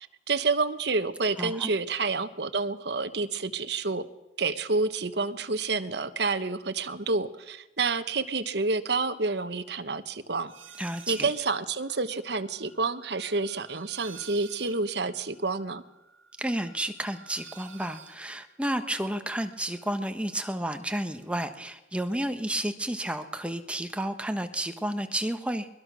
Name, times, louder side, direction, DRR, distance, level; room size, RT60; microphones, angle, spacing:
voice 1, 0.3-4.1 4.4-10.5 11.1-15.8, right 3 dB, 60° right, 10 dB, 1.1 m, -29 dB
voice 2, 1.4-1.7 10.8-11.3 16.4-25.7, right 1 dB, 5° right, 7 dB, 1.2 m, -31 dB
sound 1, 10.5-11.4 11.7-19.9 20.2-21.2, right 7 dB, 90° right, 2.2 m, -52 dB
21.5 x 21.5 x 6.2 m, 0.99 s
head